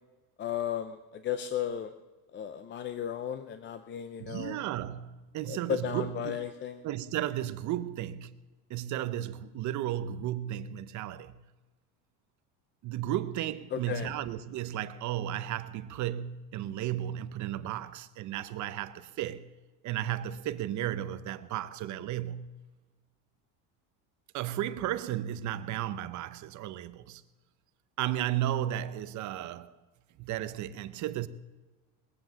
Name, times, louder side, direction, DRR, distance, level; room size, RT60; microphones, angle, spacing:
voice 1, 0.4-1.9 2.3-4.6 5.5-6.8 13.7-14.1, left 9 dB, 25° left, 0.5 m, -34 dB
voice 2, 4.2-6.5 6.8-8.4 8.7-11.4 12.8-19.5 19.8-22.5 24.3-27.2 28.0-29.7 30.2-31.3, right 12 dB, 45° right, 0.8 m, -34 dB
20.0 x 7.9 x 7.4 m
cardioid pair, 145°, 43 cm